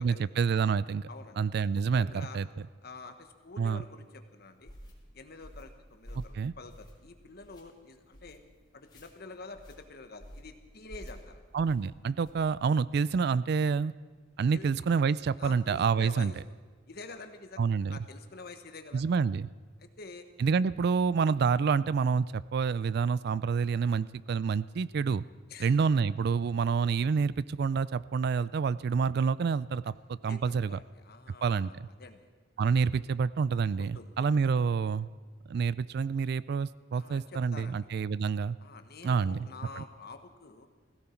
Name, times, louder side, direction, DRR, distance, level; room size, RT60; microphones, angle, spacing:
voice 1, 0.0-1.1 1.4-2.5 3.6-3.8 6.1-6.5 11.5-13.9 14.4-16.3 17.6-18.0 18.9-19.5 20.4-25.2 25.6-30.8 31.4-31.7 32.6-35.1 35.5-38.6 39.0-39.5 39.8-39.9, right 5 dB, 60° right, 19 dB, 0.3 m, -28 dB
voice 2, 1.1-1.4 2.0-2.4 2.8-4.7 5.1-8.4 8.7-11.4 14.5-14.7 15.4-16.4 16.9-19.0 19.8-20.2 25.5-25.7 30.3-32.3 33.8-34.1 36.9-37.8 38.6-40.7, left 3 dB, 55° left, 8 dB, 1.2 m, -48 dB
sound 1, 4.6-4.9 5.4-5.7 6.0-6.3 6.7-7.1 7.4-7.6 8.1-8.4 8.8-9.1 9.5-9.8 10.2-10.5 10.9-11.2 11.6-11.8 12.2-12.5, equal, 25° left, 2.9 m, -48 dB
17.0 x 16.0 x 4.5 m, 1.4 s
head